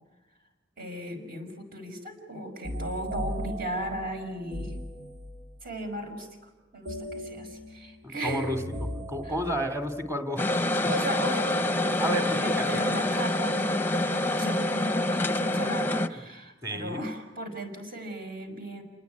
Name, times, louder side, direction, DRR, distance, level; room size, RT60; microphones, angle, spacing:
voice 1, 0.8-4.7 5.6-8.5 9.2-9.4 10.9-18.8, right 1 dB, 50° right, 5 dB, 5.8 m, -36 dB
sound 1, 2.6-5.6 6.9-10.1, equal, 85° right, 3.5 m, -37 dB
voice 2, 8.0-10.9 12.0-13.0 16.6-17.1, equal, 15° right, 7 dB, 2.8 m, -32 dB
sound 2, 10.4-16.1, left 1 dB, 10° left, 0.9 m, -26 dB
29.0 x 20.5 x 9.5 m, 1.1 s
head